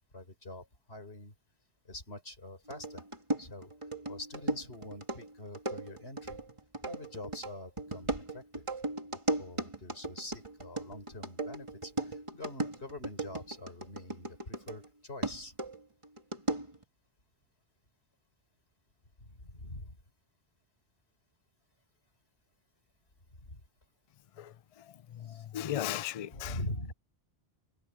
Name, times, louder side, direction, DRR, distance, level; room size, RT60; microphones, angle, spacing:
voice 1, 0.1-1.3 1.8-3.0 3.4-3.7 4.1-6.4 6.8-8.6 9.1-15.5 19.2-20.0 23.4-23.6 25.2-25.4 26.3-26.9, left 1 dB, 75° left, 5.0 m, -44 dB
sound 1, 2.7-14.9 15.2-16.8, right 2 dB, 30° right, 2.3 m, -37 dB
voice 2, 24.4-26.6, left 11 dB, 55° left, 0.4 m, -37 dB
omnidirectional pair, 1.1 m